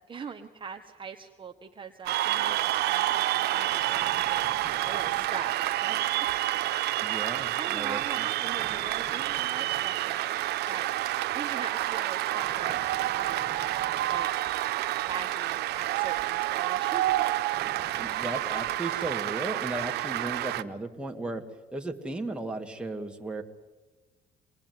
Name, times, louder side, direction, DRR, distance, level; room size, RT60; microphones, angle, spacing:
voice 1, 0.1-4.4 4.9-6.3 7.6-10.4 10.7-10.9 11.3-12.8 13.2-13.5 14.1-14.3 15.0-17.2, right 6 dB, 30° right, 4 dB, 1.4 m, -41 dB
Cheering / Applause, 2.1-20.6, right 15 dB, 75° right, 0.9 m, -29 dB
sound 1, 3.8-5.6 8.3-10.0 12.3-14.3 17.5-18.7, equal, 15° left, 5.5 m, -48 dB
voice 2, 7.0-8.3 18.0-21.4 21.7-23.4, right 2 dB, 5° right, 2 dB, 2.5 m, -35 dB
26.0 x 20.5 x 9.7 m, 1.2 s
cardioid pair, 110°, 17 cm